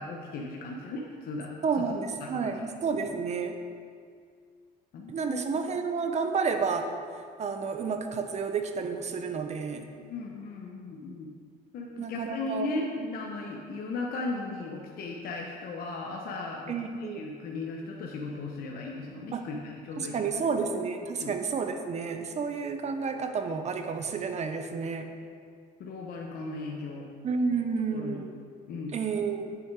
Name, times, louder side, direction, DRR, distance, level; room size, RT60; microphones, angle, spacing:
voice 1, 0.0-1.9 2.3-2.5 4.9-5.4 10.1-11.3 11.7-20.2 21.2-21.3 25.8-27.1 27.9-28.2 28.7-28.9, left 3 dB, 65° left, -1 dB, 1.0 m, -37 dB
voice 2, 1.6-3.6 5.1-6.9 7.4-9.9 12.0-12.7 16.7-17.3 19.3-19.4 20.0-25.1 27.2-28.4 28.9-29.6, right 5 dB, 40° right, 7 dB, 0.9 m, -30 dB
9.2 x 6.7 x 4.7 m, 2.2 s
cardioid pair, 110°, 17 cm